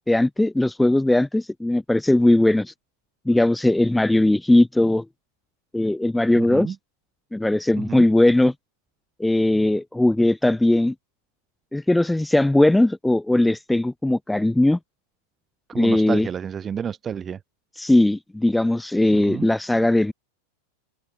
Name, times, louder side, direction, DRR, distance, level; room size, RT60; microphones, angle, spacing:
voice 1, 0.1-2.7 3.3-5.0 5.7-6.7 7.3-8.5 9.2-10.9 11.7-14.8 15.8-16.3 17.8-20.1, left 1 dB, 5° left, 2.1 m, -19 dB
voice 2, 6.3-6.8 7.8-8.1 15.7-17.4 19.1-19.5, right 7 dB, 20° right, 2.9 m, -30 dB
open air
figure-of-eight pair, 90°, 0 cm